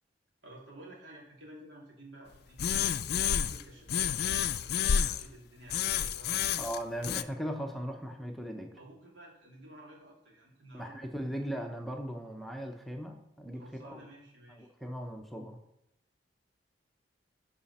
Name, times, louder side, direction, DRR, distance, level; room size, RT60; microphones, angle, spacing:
voice 1, 0.4-2.6 3.2-4.1 4.4-6.6 8.8-10.9 13.5-14.7, right 1 dB, 85° right, -3 dB, 3.1 m, -52 dB
sound 1, 2.6-3.6 3.9-5.3 5.7-7.2, left 8 dB, 60° left, 0.4 m, -30 dB
voice 2, 6.6-8.7 10.7-14.0 14.5-15.6, equal, ahead, 3 dB, 0.7 m, -38 dB
11.0 x 4.9 x 4.2 m, 0.83 s
head